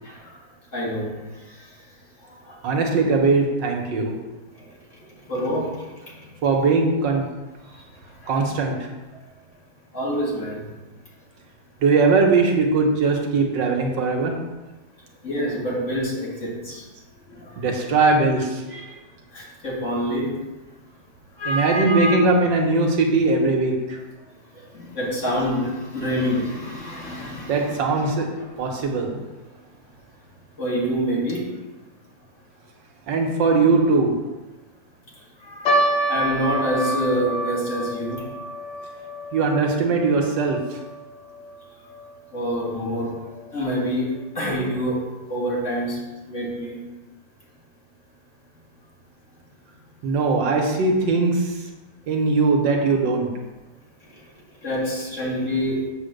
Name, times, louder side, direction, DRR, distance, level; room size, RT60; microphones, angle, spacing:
voice 1, 0.7-1.1 5.3-5.7 9.9-10.6 15.2-16.8 19.3-20.3 21.4-22.2 24.9-28.1 30.6-31.4 35.6-38.2 42.3-43.2 43.5-45.0 45.3-46.0 46.3-46.8 54.6-55.8, equal, 40° left, -5 dB, 2.1 m, -26 dB
voice 2, 2.6-4.1 6.4-7.2 8.3-8.8 11.8-14.4 17.6-18.9 21.4-24.0 27.5-28.3 28.6-29.1 33.1-34.1 39.3-40.8 50.0-51.6 52.1-53.3, right 3 dB, 80° right, 1 dB, 1.7 m, -20 dB
sound 1, 35.7-42.1 42.4-42.5 43.3-43.5 44.2-44.3 44.6-44.8, right 1 dB, 80° left, 1.8 m, -28 dB
7.3 x 3.7 x 6.5 m, 1.1 s
omnidirectional pair, 1.9 m